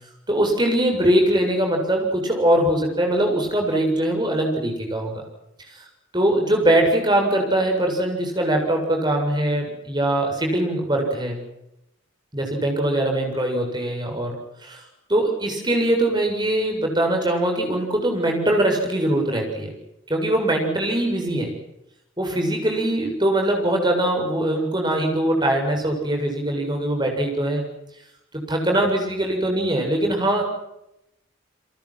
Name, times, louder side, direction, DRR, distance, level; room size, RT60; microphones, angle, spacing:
voice 1, 0.3-5.1 5.7-5.9 6.1-11.4 12.3-14.4 14.6-14.8 15.1-19.7 20.1-21.6 22.2-27.6 28.3-30.4, right 1 dB, 20° right, 2 dB, 7.5 m, -22 dB
29.5 x 23.5 x 6.1 m, 0.85 s
head